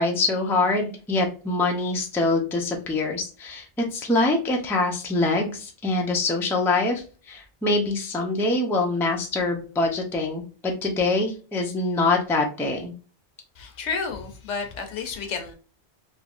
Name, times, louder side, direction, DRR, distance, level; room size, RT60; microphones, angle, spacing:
voice 1, 0.0-12.9, left 2 dB, 5° left, 0.4 m, -24 dB
voice 2, 13.6-15.5, left 5 dB, 80° left, 1.1 m, -31 dB
3.4 x 2.8 x 2.4 m
omnidirectional pair, 1.2 m